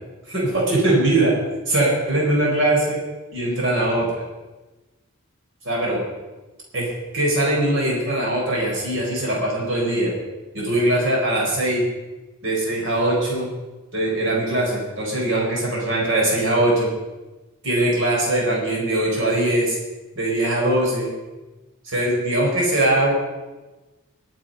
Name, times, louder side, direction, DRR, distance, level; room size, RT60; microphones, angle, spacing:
voice 1, 0.3-1.3 1.7-3.0 3.3-4.1 5.6-6.0 6.7-10.1 10.5-11.8 12.4-13.5 13.9-16.9 17.6-19.8 20.1-21.1 21.8-23.1, right 1 dB, 65° right, -3 dB, 4.5 m, -21 dB
22.0 x 7.6 x 5.3 m, 1.1 s
head